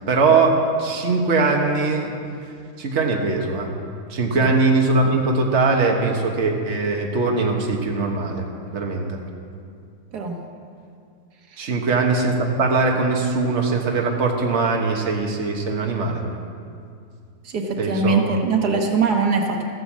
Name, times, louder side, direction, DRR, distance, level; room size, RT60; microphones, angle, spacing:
voice 1, 0.1-2.1 2.8-3.8 4.1-8.5 8.7-9.2 11.6-16.2 17.8-18.3, right 3 dB, 50° right, 1 dB, 1.5 m, -21 dB
voice 2, 17.4-19.6, right 4 dB, 85° right, 2 dB, 1.8 m, -22 dB
14.5 x 9.9 x 7.4 m, 2.4 s
omnidirectional pair, 1.7 m